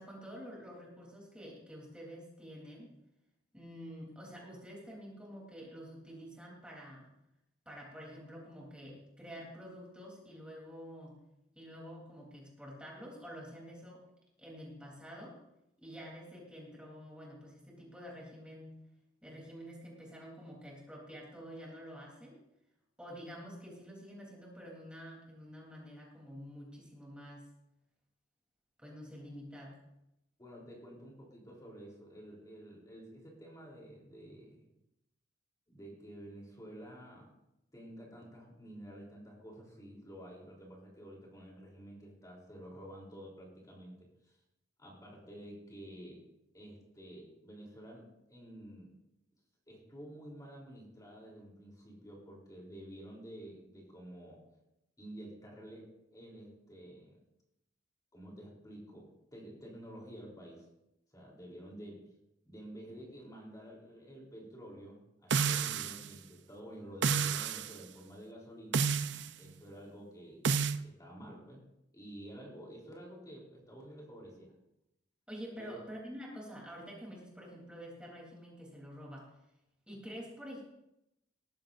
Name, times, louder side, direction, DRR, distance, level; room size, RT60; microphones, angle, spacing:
voice 1, 0.0-2.9 3.5-7.1 7.6-11.2 11.5-14.0 14.4-15.4 15.8-18.7 19.2-22.4 23.0-27.5 28.8-29.8 75.3-79.3 79.9-80.6, equal, 5° right, -3 dB, 3.4 m, -48 dB
voice 2, 30.4-34.7 35.7-37.3 37.7-44.4 44.8-46.2 46.5-48.9 49.7-54.4 55.0-57.2 58.1-60.6 61.1-62.1 62.4-68.8 69.4-70.5 70.8-71.6 71.9-74.5 75.6-75.8, right 1 dB, 20° left, -2 dB, 3.5 m, -50 dB
sound 1, 65.3-66.1 67.0-67.7 68.7-69.3 70.4-70.8, right 6 dB, 65° right, 0.6 m, -30 dB
19.0 x 14.0 x 2.6 m, 0.88 s
head